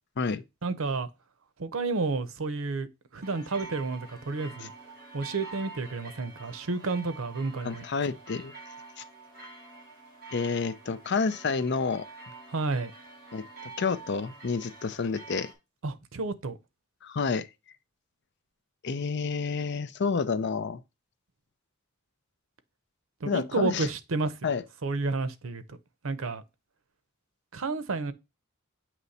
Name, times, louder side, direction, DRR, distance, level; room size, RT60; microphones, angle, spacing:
voice 1, 0.6-1.1 1.6-2.9 3.1-4.7 5.1-7.8 12.5-12.9 15.8-16.6 23.2-24.3 24.8-25.8 26.0-26.4 27.5-28.1, right 3 dB, 80° right, 0.7 m, -31 dB
sound 1, 3.2-15.5, right 3 dB, 50° right, 2.9 m, -47 dB
voice 2, 7.6-8.5 9.0-9.1 10.3-12.1 13.3-13.5 13.8-15.5 17.0-17.5 18.8-20.8 23.3-23.9 24.4-24.6, left 5 dB, 60° left, 0.5 m, -29 dB
8.0 x 3.1 x 4.1 m
head